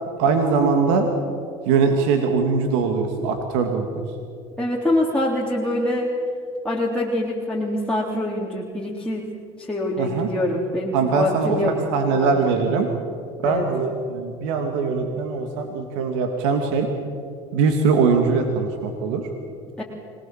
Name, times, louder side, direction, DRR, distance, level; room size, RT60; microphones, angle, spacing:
voice 1, 0.2-1.1 1.7-3.9 10.0-10.3 10.9-12.9 13.4-16.9 17.5-19.3, right 5 dB, 80° right, 4 dB, 2.5 m, -21 dB
voice 2, 4.6-6.1 6.6-9.3 9.6-11.7 12.1-12.3 12.5-12.7 13.4-13.7 19.8-19.9, left 1 dB, 5° left, -4 dB, 3.6 m, -24 dB
25.5 x 20.5 x 7.5 m, 2.4 s
supercardioid pair, 90°, 15 cm